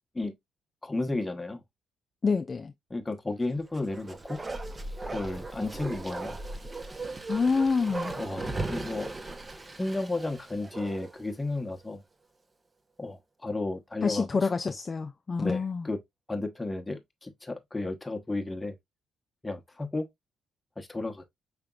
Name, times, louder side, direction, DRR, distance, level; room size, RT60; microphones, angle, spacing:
voice 1, 0.8-1.6 2.9-4.4 5.1-6.4 8.2-9.1 9.8-12.0 13.0-14.5 15.4-16.0 16.3-18.7 19.4-20.1 20.8-21.2, left 2 dB, 15° left, 0.9 m, -33 dB
voice 2, 2.2-2.7 7.3-8.2 14.0-15.9, left 4 dB, 35° left, 0.3 m, -27 dB
Bark, 3.7-11.3 11.6-11.7, right 2 dB, 25° right, 0.6 m, -37 dB
4.9 x 3.3 x 2.3 m
cardioid pair, 90°, 0 cm